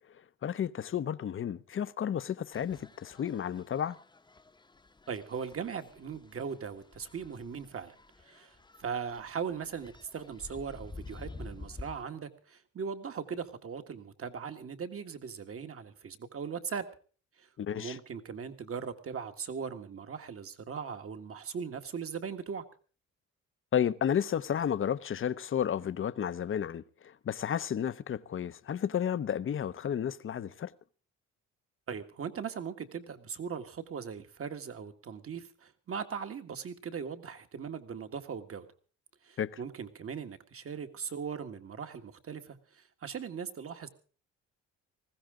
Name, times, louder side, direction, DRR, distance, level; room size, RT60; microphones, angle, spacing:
voice 1, 0.4-4.0 17.6-18.0 23.7-30.7 39.4-39.6, left 9 dB, 45° left, 0.8 m, -32 dB
sound 1, 2.5-12.0, left 3 dB, 15° left, 0.9 m, -50 dB
voice 2, 5.1-16.9 17.4-22.6 31.9-38.7 39.2-43.9, right 6 dB, 50° right, 1.8 m, -39 dB
20.0 x 15.5 x 3.7 m
cardioid pair, 90°, 30 cm